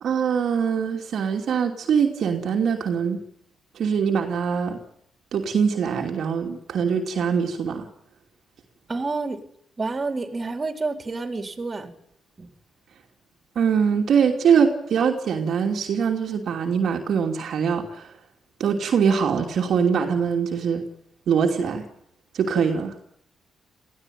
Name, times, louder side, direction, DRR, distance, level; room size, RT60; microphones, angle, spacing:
voice 1, 0.0-3.2 3.7-4.8 5.3-7.9 13.5-18.1 18.6-20.8 21.3-21.8 22.3-22.9, right 6 dB, 70° right, 2 dB, 2.8 m, -23 dB
voice 2, 8.9-9.4 9.8-11.9 12.4-12.5, right 3 dB, 35° right, 6 dB, 4.1 m, -29 dB
18.5 x 15.5 x 9.3 m, 0.68 s
cardioid pair, 70°, 0 cm